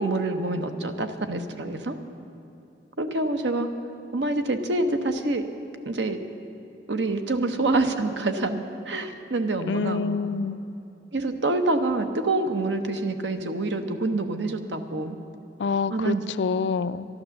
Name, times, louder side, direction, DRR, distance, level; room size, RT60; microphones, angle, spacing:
voice 1, 0.0-2.0 3.0-3.7 4.1-5.4 5.8-6.2 6.9-10.0 11.1-15.2 15.9-16.2, right 2 dB, 85° right, 7 dB, 0.9 m, -26 dB
voice 2, 9.7-10.6 15.6-17.1, left 5 dB, 80° left, 13 dB, 0.4 m, -27 dB
12.0 x 12.0 x 7.1 m, 2.8 s
head